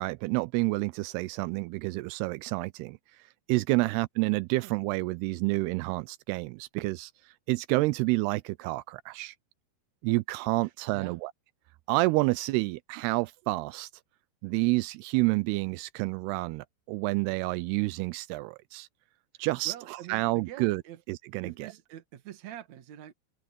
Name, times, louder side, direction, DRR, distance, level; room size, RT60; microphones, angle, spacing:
voice 1, 0.0-3.0 3.5-7.1 7.5-9.3 10.0-11.3 11.9-13.9 14.4-18.9 19.4-20.8 21.1-21.7, right 22 dB, 85° right, 2.6 m, -29 dB
voice 2, 10.6-11.2 19.6-21.0 21.4-23.1, right 11 dB, 55° right, 2.5 m, -45 dB
omnidirectional pair, 4.6 m